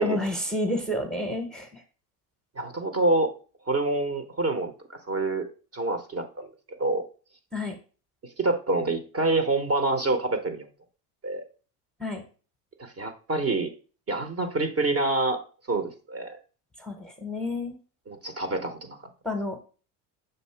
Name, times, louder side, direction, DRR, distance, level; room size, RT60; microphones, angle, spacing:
voice 1, 0.0-1.8 7.5-7.8 12.0-12.2 16.8-17.8 19.2-19.6, left 1 dB, ahead, 6 dB, 0.9 m, -30 dB
voice 2, 2.6-3.3 3.7-4.7 5.1-5.5 5.7-6.5 6.8-7.1 8.4-10.7 11.2-11.5 12.8-13.7 14.1-15.4 15.7-16.4 18.1-19.0, right 2 dB, 30° right, 7 dB, 0.9 m, -26 dB
6.6 x 2.6 x 5.6 m, 0.37 s
supercardioid pair, 110°, 46 cm